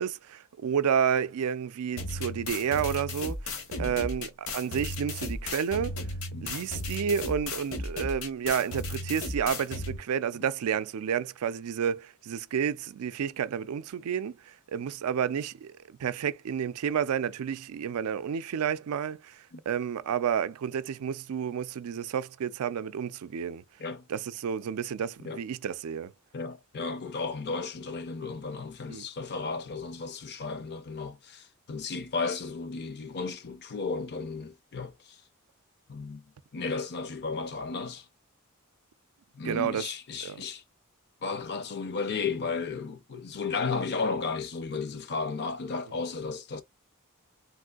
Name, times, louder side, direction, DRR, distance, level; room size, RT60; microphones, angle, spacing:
voice 1, 0.0-6.0 6.4-23.6 24.1-26.1 28.9-29.1 39.4-39.9 40.2-40.4, right 8 dB, 80° right, 0.4 m, -30 dB
sound 1, 2.0-10.0, left 2 dB, 65° left, 0.9 m, -35 dB
voice 2, 26.3-35.2 35.9-36.2 36.5-38.1 39.3-40.6 41.2-46.6, left 4 dB, 50° left, 0.6 m, -34 dB
3.5 x 2.5 x 2.3 m
head